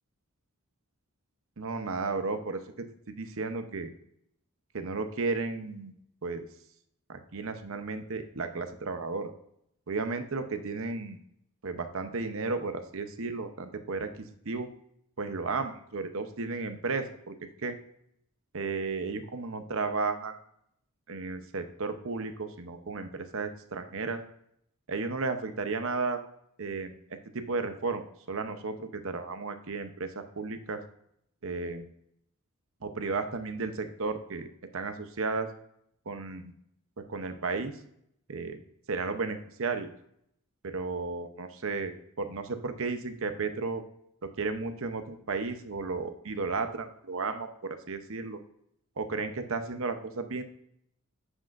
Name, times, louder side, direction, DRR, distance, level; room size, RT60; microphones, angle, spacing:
voice 1, 1.6-3.9 4.7-5.9 6.2-6.4 7.1-9.3 9.9-11.2 11.6-14.7 15.2-17.4 17.6-17.8 18.5-20.4 21.1-24.2 24.9-26.2 26.6-26.9 27.3-30.8 31.4-31.9 32.8-34.5 34.7-35.5 36.1-36.5 37.1-37.7 38.3-38.6 38.9-39.9 40.6-43.8 44.4-48.4 49.0-50.4, right 4 dB, 65° right, 8 dB, 0.8 m, -33 dB
9.9 x 7.6 x 2.6 m, 0.71 s
head